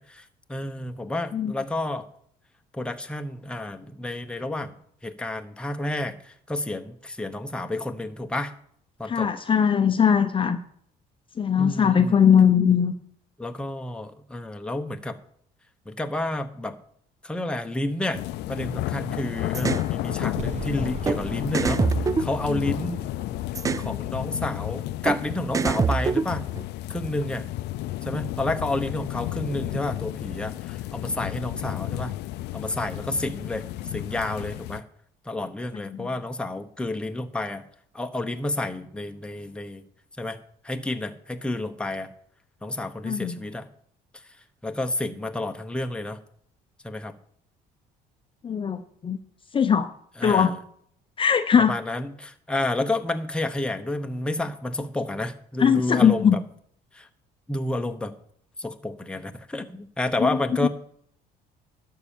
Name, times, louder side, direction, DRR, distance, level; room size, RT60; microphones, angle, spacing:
voice 1, 0.0-2.1 2.7-4.7 5.0-8.5 9.0-9.3 11.6-12.2 13.4-15.2 15.9-16.8 17.2-18.2 18.5-21.8 22.2-23.0 23.8-26.5 26.9-27.5 28.0-32.1 32.5-33.6 33.9-34.8 35.3-37.6 37.9-39.8 40.2-40.4 40.6-42.1 42.6-43.7 44.6-46.2 46.8-47.1 50.2-50.6 51.6-56.4 56.9-57.1 57.5-58.1 58.6-60.7, left 1 dB, 5° left, 6 dB, 0.9 m, -30 dB
voice 2, 9.1-10.6 11.4-12.9 22.5-22.6 35.9-36.1 43.0-43.4 48.4-49.2 49.5-49.9 50.2-50.5 51.2-51.7 55.6-56.4 60.2-60.7, left 7 dB, 30° left, 8 dB, 0.7 m, -20 dB
sound 1, 18.1-34.8, left 16 dB, 80° left, 0.5 m, -32 dB
sound 2, 19.5-19.9 21.1-21.2 21.5-23.0 23.6-23.9 25.1-25.2 25.5-26.6, right 5 dB, 20° right, 0.3 m, -25 dB
sound 3, 20.4-25.5, right 5 dB, 40° right, 0.8 m, -41 dB
12.0 x 5.5 x 7.1 m, 0.66 s
cardioid pair, 110°, 17 cm